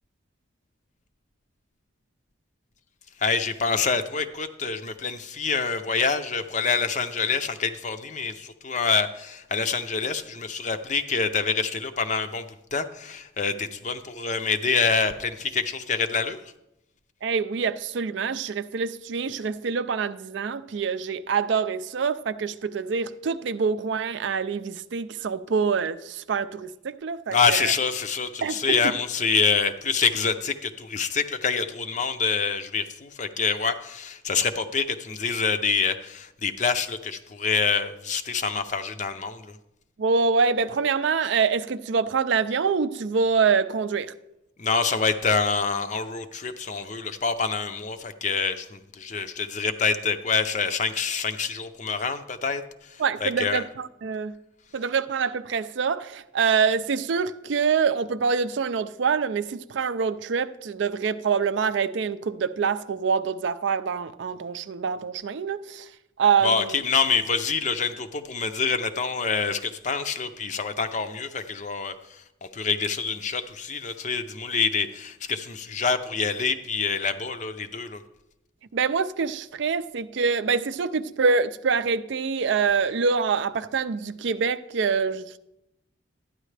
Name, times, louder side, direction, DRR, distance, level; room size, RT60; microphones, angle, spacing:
voice 1, 3.2-12.5 12.7-16.4 27.3-39.6 44.6-53.6 66.4-72.2 72.5-78.0, left 5 dB, 35° left, 0.5 m, -26 dB
voice 2, 17.2-27.7 28.4-28.6 40.0-44.1 53.0-54.3 54.7-65.9 66.2-66.8 78.7-85.4, right 5 dB, 65° right, 0.4 m, -25 dB
12.5 x 9.9 x 3.3 m
head